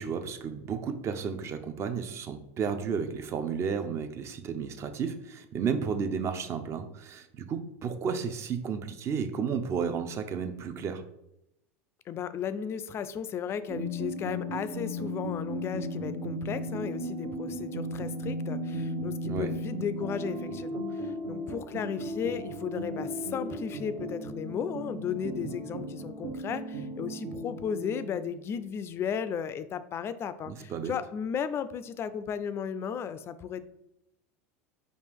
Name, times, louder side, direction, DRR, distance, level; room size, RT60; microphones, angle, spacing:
voice 1, 0.0-11.0 19.3-19.5 25.4-25.5 30.5-30.9, right 6 dB, 35° right, 9 dB, 0.5 m, -32 dB
voice 2, 12.1-33.6, left 7 dB, 35° left, 13 dB, 0.3 m, -35 dB
sound 1, 13.7-28.3, equal, 55° right, 0.9 m, -36 dB
5.3 x 2.4 x 3.5 m, 0.83 s
hypercardioid pair, 105°, 8 cm